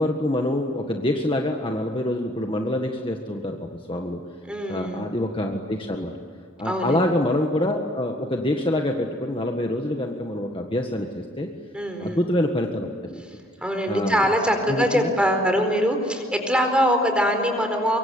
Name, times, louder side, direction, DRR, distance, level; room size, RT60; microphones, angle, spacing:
voice 1, 0.0-3.6 3.9-4.2 4.7-6.1 6.6-11.5 12.0-13.2 13.9-14.3 14.7-15.1, left 1 dB, 25° left, 2 dB, 1.7 m, -26 dB
voice 2, 4.5-5.0 6.6-7.0 11.7-12.2 13.6-18.0, equal, 5° right, 5 dB, 4.4 m, -23 dB
25.0 x 24.0 x 9.7 m, 2.2 s
head